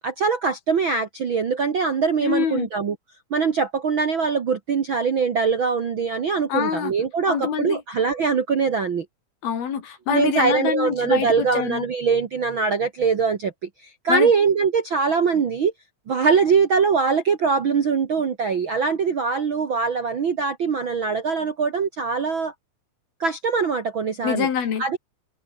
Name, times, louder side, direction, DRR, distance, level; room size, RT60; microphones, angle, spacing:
voice 1, 0.0-2.9 3.3-9.0 10.1-13.5 14.0-15.7 16.1-22.5 23.2-24.5 24.8-25.0, right 5 dB, 50° right, 1.6 m, -22 dB
voice 2, 2.2-2.7 6.5-6.9 7.2-7.8 9.4-11.8 14.1-14.3 24.2-24.8, left 8 dB, 85° left, 4.9 m, -25 dB
omnidirectional pair, 4.2 m